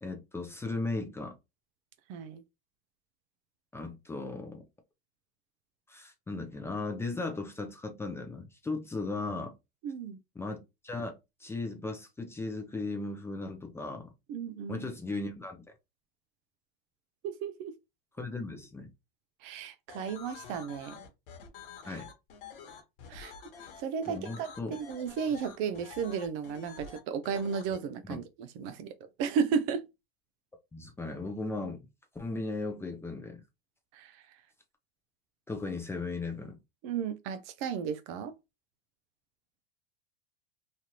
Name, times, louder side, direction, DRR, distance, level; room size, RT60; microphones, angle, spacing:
voice 1, 0.0-1.3 3.7-4.6 5.9-9.6 10.4-11.1 11.4-14.1 14.7-15.6 18.2-18.9 21.9-22.1 24.1-24.8 28.0-28.2 30.7-31.9 32.1-33.4 35.5-36.6, left 3 dB, 10° left, 0.5 m, -36 dB
voice 2, 2.1-2.4 9.8-10.2 14.3-14.9 17.2-17.7 19.4-21.0 21.8-22.0 23.1-23.3 23.8-29.8 33.9-34.2 36.8-38.3, right 6 dB, 45° right, 0.4 m, -34 dB
sound 1, 19.9-27.8, left 6 dB, 60° left, 1.2 m, -48 dB
3.1 x 2.4 x 2.8 m
hypercardioid pair, 115°, 31 cm